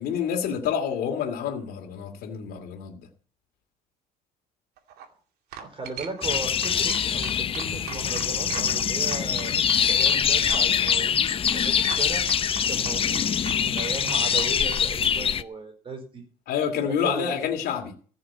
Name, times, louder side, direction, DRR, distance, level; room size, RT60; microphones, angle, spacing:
voice 1, 0.0-3.1 16.5-17.9, left 8 dB, 70° left, 2.5 m, -28 dB
sound 1, 4.8-5.1 5.5-6.4 6.6-8.8 9.1-10.6 10.9-11.0 11.5-12.0 12.3-14.8, right 8 dB, 80° right, 2.4 m, -38 dB
voice 2, 5.6-12.3 12.7-13.3 13.6-16.2 16.8-17.5, right 4 dB, 35° right, 4.6 m, -37 dB
sound 2, 6.2-15.4, left 8 dB, 35° left, 0.7 m, -24 dB
15.0 x 6.4 x 8.6 m
cardioid pair, 125°, 16 cm